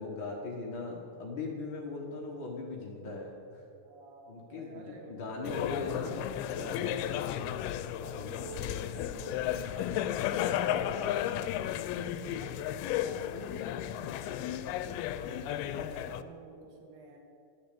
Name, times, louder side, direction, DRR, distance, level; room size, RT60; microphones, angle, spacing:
voice 1, 0.0-3.6 4.3-6.2 6.6-7.4 12.9-13.2, left 3 dB, 65° left, -2 dB, 1.2 m, -39 dB
voice 2, 3.8-5.2 6.5-6.9 8.0-17.2, right 4 dB, 70° right, 1 dB, 3.3 m, -50 dB
sound 1, 5.4-16.2, left 11 dB, 85° left, 2.4 m, -34 dB
12.5 x 6.8 x 8.4 m, 2.5 s
omnidirectional pair, 4.3 m